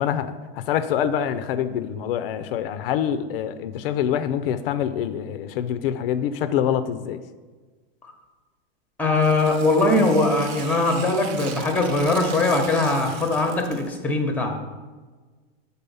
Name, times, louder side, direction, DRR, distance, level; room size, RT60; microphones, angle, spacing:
voice 1, 0.0-7.2, left 9 dB, 65° left, 11 dB, 0.5 m, -25 dB
voice 2, 9.0-14.7, left 2 dB, 5° left, 4 dB, 0.9 m, -21 dB
Tearing, 9.1-14.0, right 7 dB, 40° right, 0.7 m, -39 dB
6.9 x 4.1 x 5.4 m, 1.3 s
supercardioid pair, 140°, 31 cm